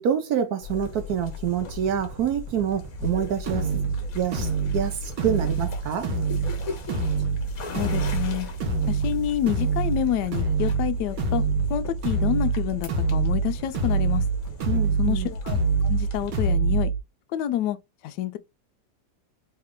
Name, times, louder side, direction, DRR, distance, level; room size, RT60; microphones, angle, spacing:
voice 1, 0.0-3.7 4.1-6.1 14.7-15.3, right 8 dB, 70° right, 0.9 m, -27 dB
sound 1, 0.6-16.5, left 4 dB, 55° left, 1.4 m, -43 dB
sound 2, 0.6-16.9, left 4 dB, 50° right, 1.2 m, -39 dB
sound 3, 3.0-17.0, right 4 dB, 90° right, 1.8 m, -26 dB
voice 2, 7.7-8.5 8.9-11.4 11.7-14.2 15.0-16.9 17.3-17.8 18.0-18.4, left 11 dB, 70° left, 1.1 m, -28 dB
3.6 x 3.2 x 3.6 m
omnidirectional pair, 2.0 m